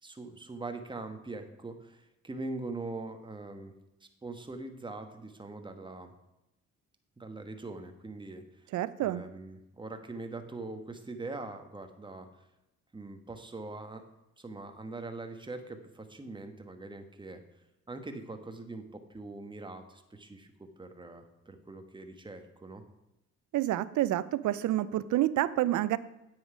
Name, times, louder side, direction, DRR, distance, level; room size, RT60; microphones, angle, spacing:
voice 1, 0.0-3.7 4.2-6.1 7.2-8.7 9.0-12.3 12.9-14.0 14.4-17.4 17.9-22.8, right 2 dB, 15° right, 6 dB, 1.3 m, -42 dB
voice 2, 8.7-9.2 23.5-26.0, right 14 dB, 75° right, 16 dB, 0.6 m, -28 dB
9.4 x 8.0 x 5.0 m, 0.93 s
cardioid pair, 90°, 30 cm